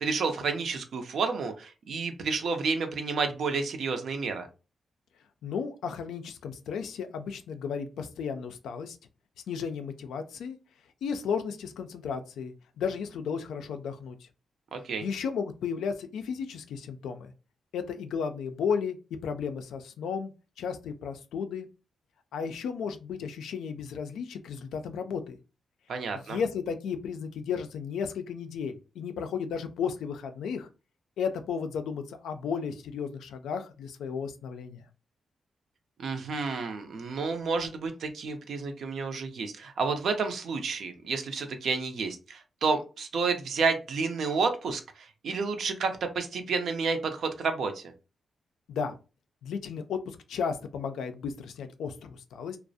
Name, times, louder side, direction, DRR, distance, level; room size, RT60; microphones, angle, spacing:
voice 1, 0.0-4.5 14.7-15.1 25.9-26.4 36.0-47.9, right 4 dB, 75° right, 6 dB, 0.4 m, -30 dB
voice 2, 5.4-9.0 9.5-10.6 11.0-14.2 15.0-17.3 17.7-19.0 19.2-20.3 20.6-21.7 22.3-25.4 26.3-30.7 31.2-34.9 48.7-48.9 49.4-52.6, left 6 dB, 90° left, 7 dB, 0.3 m, -34 dB
2.3 x 2.0 x 2.6 m, 0.32 s
cardioid pair, 70°, 0 cm